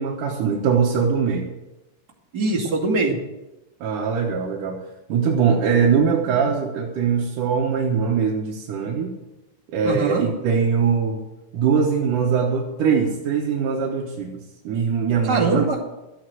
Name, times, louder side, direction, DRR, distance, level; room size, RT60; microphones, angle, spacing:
voice 1, 0.0-1.5 3.8-4.8 5.1-9.1 9.7-11.2 11.5-15.7, right 6 dB, 65° right, -1 dB, 2.5 m, -22 dB
voice 2, 2.3-3.2 9.8-10.2 15.3-15.8, right 3 dB, 30° right, -3 dB, 2.3 m, -22 dB
13.5 x 8.5 x 7.8 m, 1.0 s
omnidirectional pair, 4.5 m